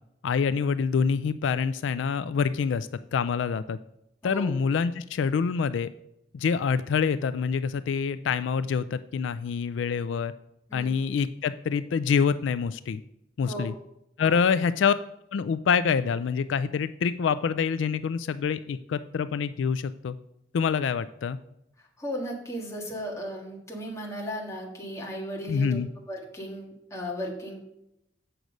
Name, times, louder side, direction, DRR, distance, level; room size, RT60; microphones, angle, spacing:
voice 1, 0.2-3.8 4.2-5.9 6.3-10.3 10.7-13.0 13.4-13.7 14.2-14.9 15.3-20.2 20.5-21.4 25.5-25.9, left 6 dB, 85° left, 14 dB, 0.3 m, -26 dB
voice 2, 4.2-4.5 10.7-11.0 13.4-13.7 14.2-14.4 22.0-25.8 26.1-27.6, equal, 15° left, -1 dB, 1.7 m, -36 dB
7.9 x 6.1 x 5.2 m, 0.81 s
head